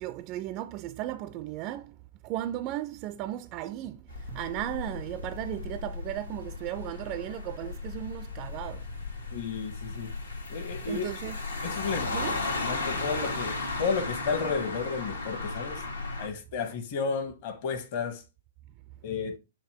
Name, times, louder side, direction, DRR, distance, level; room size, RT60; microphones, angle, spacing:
voice 1, 0.0-1.9 2.2-4.0 4.3-8.8 10.9-11.4 12.1-12.4, right 13 dB, 35° right, 0.3 m, -35 dB
sound 1, 4.1-16.3, left 3 dB, 85° left, 1.4 m, -35 dB
voice 2, 9.3-10.1 10.5-11.1 11.6-12.1 12.6-15.8 16.2-18.2 19.0-19.4, left 5 dB, 45° left, 1.1 m, -32 dB
7.3 x 2.8 x 4.5 m
figure-of-eight pair, 115°, 0 cm